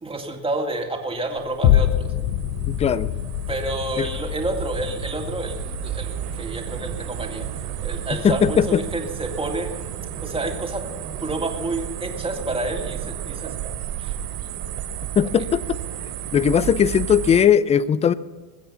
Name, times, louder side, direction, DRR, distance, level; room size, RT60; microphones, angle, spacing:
voice 1, 0.0-2.1 3.5-9.7 10.2-13.5 14.0-14.2 15.4-15.5, right 2 dB, 15° right, 2 dB, 2.3 m, -29 dB
sound 1, 1.2-17.4, right 10 dB, 70° right, 3.2 m, -32 dB
sound 2, 1.6-10.2 10.7-10.8, left 12 dB, 60° left, 0.9 m, -27 dB
voice 2, 2.7-3.1 4.0-4.1 8.2-8.8 15.2-15.8 16.3-18.1, left 8 dB, 15° left, 18 dB, 0.3 m, -18 dB
21.5 x 7.9 x 5.7 m, 1.4 s
supercardioid pair, 110°, 41 cm